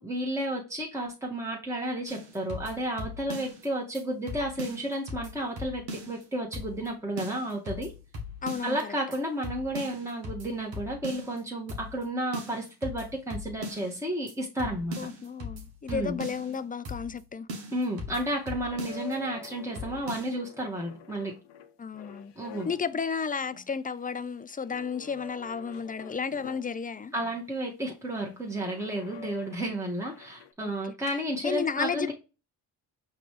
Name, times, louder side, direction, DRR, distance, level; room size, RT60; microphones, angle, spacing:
voice 1, 0.0-7.9 8.6-15.0 15.9-16.2 17.7-21.3 22.4-22.7 27.1-32.1, right 1 dB, 5° right, 1.4 m, -32 dB
sound 1, 2.1-3.7 3.9-4.0 4.3-6.2 6.5-6.9 7.2-8.8 9.1-9.2 9.4-11.4 11.7-12.0 12.3-14.0 14.3-14.4 14.6-16.6 16.8-17.2 17.5-19.1 19.4-19.5 19.7-20.3, left 1 dB, 85° right, 1.4 m, -39 dB
voice 2, 8.4-9.0 15.0-17.5 21.8-22.3 22.6-27.1 30.6-30.8 31.4-32.1, left 6 dB, 20° left, 0.4 m, -33 dB
sound 2, 18.7-23.1 23.5-23.9 24.6-27.5 28.5-30.5, left 9 dB, 75° left, 0.7 m, -47 dB
5.0 x 3.2 x 3.1 m
supercardioid pair, 55°, 43 cm